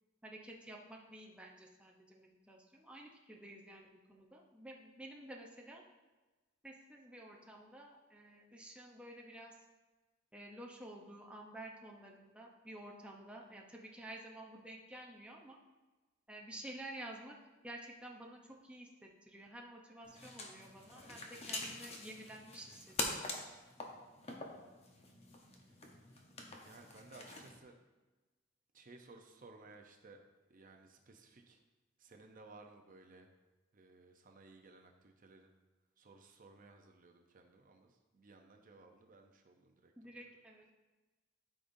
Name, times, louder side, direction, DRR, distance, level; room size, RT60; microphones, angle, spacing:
voice 1, 0.2-5.8 6.6-9.6 10.3-15.6 16.3-17.4 17.6-23.3 40.0-40.7, right 1 dB, 5° right, -1 dB, 0.7 m, -51 dB
sound 1, 20.0-27.6, left 2 dB, 30° left, 0.9 m, -45 dB
voice 2, 25.6-26.2 26.6-27.7 28.7-30.2 30.5-31.6 32.0-33.3 33.7-35.5 36.0-39.9, right 3 dB, 45° right, 3 dB, 0.7 m, -59 dB
12.5 x 5.2 x 2.7 m, 1.2 s
head